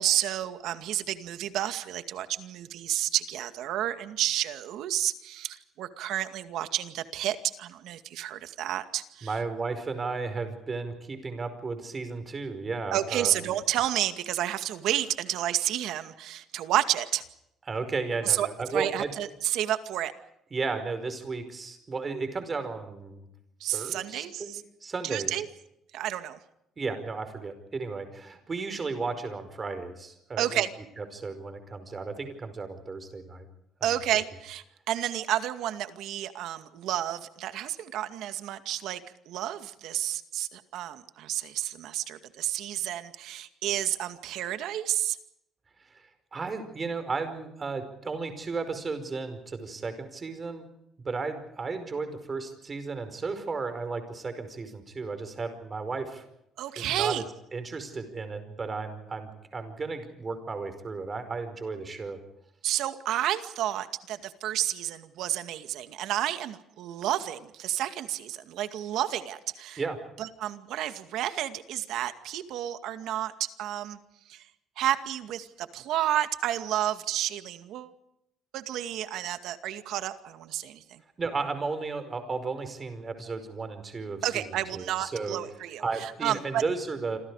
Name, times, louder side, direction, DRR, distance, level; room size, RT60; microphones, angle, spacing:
voice 1, 0.0-9.3 12.9-17.2 18.2-18.5 18.7-20.1 23.6-24.6 25.0-25.5 25.9-26.4 30.4-30.7 33.8-39.0 39.3-45.2 56.6-57.2 62.6-69.8 70.2-74.0 74.3-74.4 74.8-77.9 78.5-81.0 84.2-86.6, right 12 dB, 75° right, 9 dB, 2.2 m, -30 dB
voice 2, 9.2-13.3 17.7-19.1 20.5-23.3 23.7-24.5 24.8-25.4 26.8-30.6 31.0-33.5 33.8-33.9 45.9-50.6 51.0-56.2 56.8-57.3 57.5-62.2 69.8-70.0 81.2-84.5 84.7-85.4 85.8-87.2, right 4 dB, 25° right, 9 dB, 5.1 m, -34 dB
27.5 x 27.0 x 4.9 m, 0.82 s
cardioid pair, 135°, 0 cm